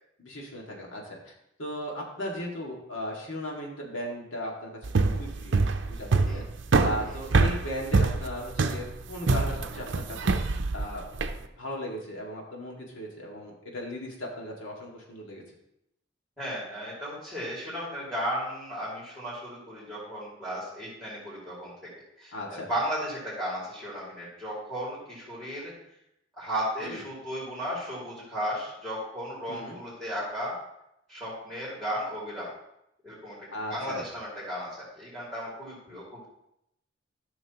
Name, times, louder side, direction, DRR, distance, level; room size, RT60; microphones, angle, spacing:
voice 1, 0.2-1.3 1.6-4.7 5.0-6.4 6.8-10.4 10.7-11.1 11.6-15.4 22.3-22.7 26.8-27.0 29.5-29.8 33.5-34.0, equal, 80° left, -2 dB, 2.0 m, -37 dB
sound 1, 4.8-11.4, right 3 dB, 65° right, 0.6 m, -25 dB
voice 2, 16.4-21.7 22.2-25.7 26.4-30.6 31.1-32.5 33.0-36.2, equal, 5° left, -10 dB, 2.9 m, -35 dB
13.0 x 6.2 x 3.0 m, 0.81 s
head